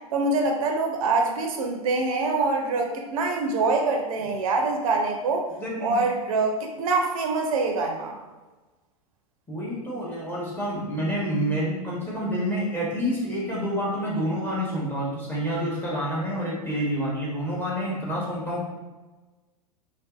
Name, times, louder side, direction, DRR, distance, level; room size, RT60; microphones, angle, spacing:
voice 1, 0.1-5.5 5.8-8.2, right 3 dB, 65° right, 2 dB, 0.5 m, -25 dB
voice 2, 5.6-6.0 9.5-18.6, equal, 10° left, -6 dB, 0.9 m, -28 dB
2.5 x 2.3 x 2.3 m, 1.2 s
hypercardioid pair, 100°, 19 cm